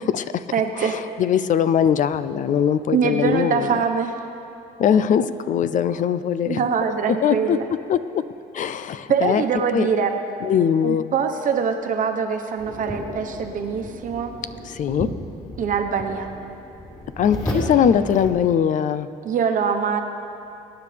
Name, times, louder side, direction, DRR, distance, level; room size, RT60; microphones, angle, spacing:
voice 1, 0.0-0.5 0.7-3.8 4.8-6.7 7.1-8.3 8.5-9.4 9.7-9.9 10.4-11.1 14.6-15.1 17.2-19.1, left 8 dB, 50° left, 13 dB, 0.5 m, -21 dB
voice 2, 0.5-1.0 2.9-4.1 6.5-7.6 9.1-10.2 10.8-14.3 15.6-16.3 19.2-20.0, right 6 dB, 50° right, 5 dB, 1.2 m, -23 dB
sound 1, 12.6-18.3, equal, 25° left, 3.3 m, -33 dB
23.5 x 10.0 x 3.4 m, 2.6 s
cardioid pair, 110°, 17 cm